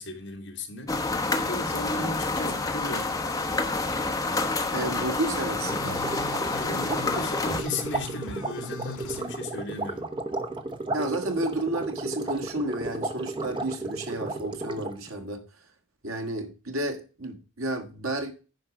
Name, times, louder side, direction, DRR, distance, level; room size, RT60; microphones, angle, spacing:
voice 1, 0.0-3.1 6.5-10.1, left 2 dB, 55° left, 2.0 m, -36 dB
sound 1, 0.9-7.6, left 3 dB, 15° left, 1.0 m, -28 dB
voice 2, 4.7-6.1 10.9-15.4 16.0-18.3, right 1 dB, 75° right, 1.9 m, -31 dB
sound 2, 5.6-9.2, left 4 dB, 90° left, 1.7 m, -40 dB
sound 3, 5.7-15.1, right 2 dB, 20° right, 0.9 m, -34 dB
10.5 x 4.8 x 6.0 m
head